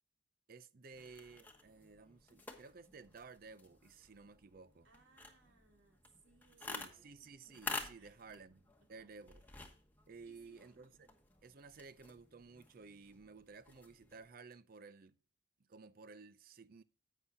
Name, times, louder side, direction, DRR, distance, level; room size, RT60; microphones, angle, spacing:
voice 1, 0.5-4.9 6.6-8.6 8.9-9.4 10.1-11.2 11.4-15.2 15.7-16.8, right 4 dB, 50° right, 0.5 m, -55 dB
sound 1, 0.9-14.3, left 2 dB, 10° left, 1.2 m, -51 dB
voice 2, 4.8-7.1 7.9-8.3 10.2-10.7, right 2 dB, 80° right, 2.8 m, -67 dB
11.0 x 8.2 x 2.7 m
head